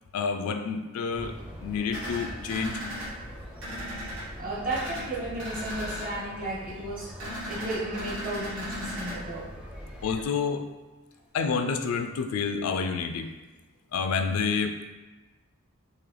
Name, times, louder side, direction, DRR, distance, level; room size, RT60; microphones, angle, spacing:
voice 1, 0.1-2.8 10.0-10.7 11.3-13.3 13.9-14.8, left 5 dB, 80° left, 6 dB, 0.3 m, -29 dB
sound 1, 1.1-10.2, equal, 5° right, 0.5 m, -43 dB
sound 2, 1.9-3.1 3.6-4.2 4.7-5.0 5.4-6.1 7.2-9.1, equal, 65° right, 1.5 m, -36 dB
voice 2, 4.4-9.5, right 2 dB, 40° right, -6 dB, 1.1 m, -34 dB
3.7 x 2.7 x 3.2 m, 1.2 s
head